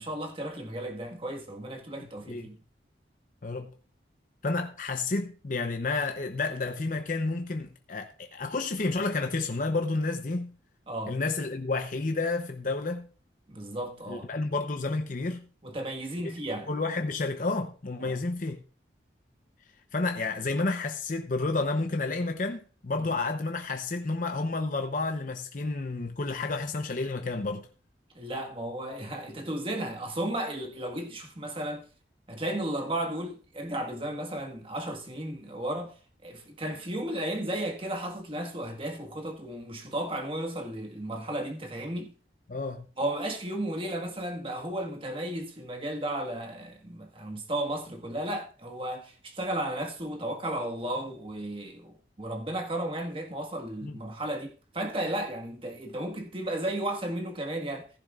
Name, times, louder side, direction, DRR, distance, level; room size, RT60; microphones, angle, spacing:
voice 1, 0.0-2.6 10.9-11.2 13.5-14.3 15.6-16.7 18.0-18.2 23.0-23.1 28.2-31.8 32.3-35.9 36.2-42.1 43.0-57.9, right 1 dB, 30° right, 1.6 m, -34 dB
voice 2, 4.4-10.5 11.1-13.1 14.1-15.5 16.7-18.6 19.9-27.7 42.5-42.9 53.8-54.0, left 3 dB, 50° left, 0.7 m, -30 dB
15.0 x 10.5 x 2.4 m
head